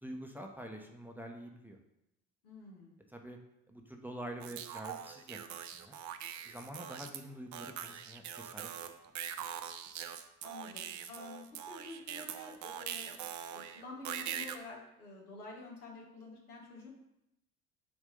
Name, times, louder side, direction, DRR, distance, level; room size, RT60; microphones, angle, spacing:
voice 1, 0.0-1.8 3.1-3.4 3.7-6.0 6.4-8.7, right 1 dB, 5° right, 2 dB, 0.8 m, -46 dB
voice 2, 2.4-3.0 10.4-13.1 13.5-16.9, left 2 dB, 85° left, -2 dB, 1.5 m, -49 dB
sound 1, 4.4-7.2 7.5-14.6, right 9 dB, 40° right, 0.6 m, -43 dB
7.5 x 2.7 x 5.2 m, 0.86 s
hypercardioid pair, 60°, 44 cm